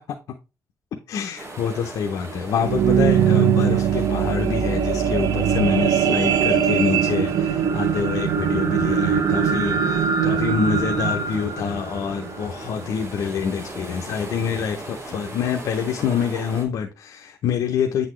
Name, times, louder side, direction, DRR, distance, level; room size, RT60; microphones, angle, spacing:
voice 1, 1.1-18.1, left 7 dB, 85° left, 0.6 m, -26 dB
sound 1, 1.4-16.6, right 2 dB, 50° right, 2.0 m, -39 dB
sound 2, 2.3-12.9 13.5-13.6, right 8 dB, 85° right, 0.6 m, -21 dB
8.1 x 4.0 x 3.1 m
cardioid pair, 105°, 6 cm